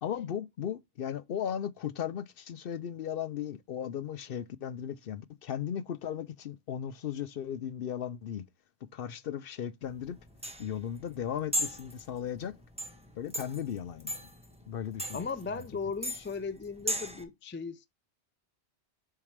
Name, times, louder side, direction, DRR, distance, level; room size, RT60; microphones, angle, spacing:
voice 1, 0.0-8.4 8.9-10.2 10.6-12.6 13.2-14.2 14.7-15.3, left 9 dB, 60° left, 0.7 m, -36 dB
sound 1, 9.8-17.2, equal, 5° right, 1.1 m, -38 dB
voice 2, 15.1-17.9, left 5 dB, 20° left, 0.3 m, -37 dB
7.1 x 4.5 x 3.2 m
omnidirectional pair, 1.1 m